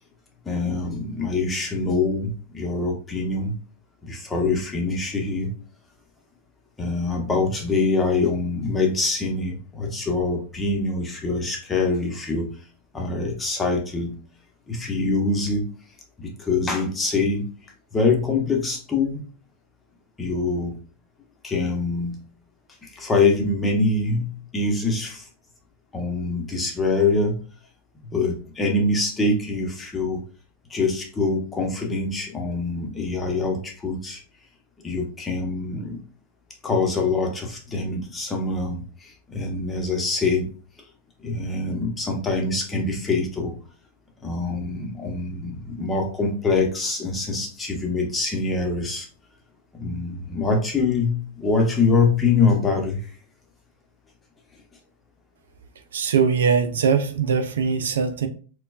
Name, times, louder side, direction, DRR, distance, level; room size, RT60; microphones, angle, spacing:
voice 1, 0.4-3.5 4.0-5.5 6.8-12.6 12.9-14.2 14.7-15.6 16.2-17.5 17.9-19.2 20.2-20.8 21.4-22.2 22.8-25.3 25.9-27.4 28.1-30.2 30.7-34.2 34.8-36.0 36.6-40.5 41.2-43.6 44.2-49.1 49.7-53.1, left 3 dB, 15° left, 1 dB, 1.0 m, -24 dB
voice 2, 55.9-58.3, right 6 dB, 85° right, 7 dB, 0.5 m, -21 dB
4.3 x 2.3 x 2.5 m, 0.38 s
hypercardioid pair, 115°, 0 cm